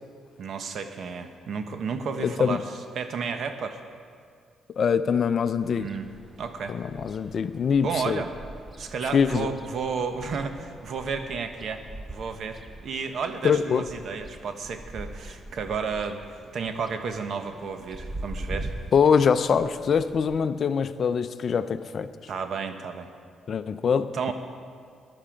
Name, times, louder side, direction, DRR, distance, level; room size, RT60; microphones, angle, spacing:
voice 1, 0.4-2.6 2.9-3.8 5.8-6.1 6.4-6.8 7.8-8.3 8.8-11.8 12.1-16.2 16.5-18.7 22.3-23.1 24.1-24.3, right 5 dB, 60° right, 8 dB, 1.1 m, -32 dB
voice 2, 2.2-2.6 4.8-5.9 6.7-8.2 9.1-9.5 13.4-13.9 18.9-22.1 23.5-24.3, left 6 dB, 55° left, 12 dB, 0.5 m, -23 dB
sound 1, 5.6-20.5, right 1 dB, 15° right, 0.7 m, -42 dB
14.5 x 11.0 x 5.1 m, 2.1 s
cardioid pair, 90°, 0 cm